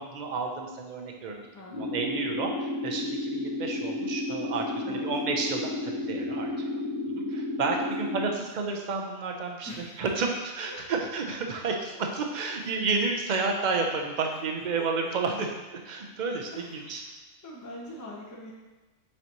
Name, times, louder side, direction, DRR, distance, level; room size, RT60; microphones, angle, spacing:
voice 1, 0.0-1.4 1.7-5.7 6.1-6.8 7.2-9.7 10.0-11.7 12.2-17.0, right 4 dB, 45° right, 2 dB, 0.7 m, -31 dB
voice 2, 1.5-2.3 4.8-5.5 7.7-7.9 8.2-8.4 9.6-10.0 10.7-10.8 11.7-12.1 12.5-12.7 14.3-14.5 14.8-14.9 16.5-17.2 17.4-18.5, left 1 dB, 15° left, -4 dB, 0.9 m, -44 dB
sound 1, 1.7-8.3, left 1 dB, 45° left, 2.2 m, -32 dB
7.5 x 4.2 x 3.0 m, 1.2 s
omnidirectional pair, 1.4 m